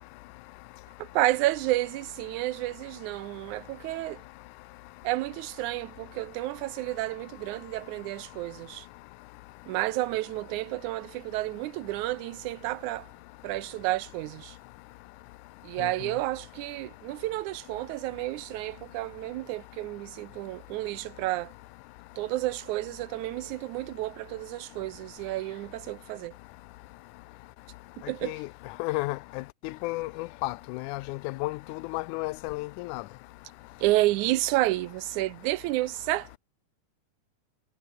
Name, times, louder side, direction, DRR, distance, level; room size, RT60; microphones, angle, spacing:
voice 1, 1.0-4.2 5.0-8.9 9.7-13.1 13.4-14.6 15.6-21.5 22.2-26.3 28.1-28.4 33.8-36.4, right 18 dB, 85° right, 2.1 m, -30 dB
voice 2, 28.8-33.0, left 21 dB, 90° left, 2.0 m, -33 dB
omnidirectional pair, 3.5 m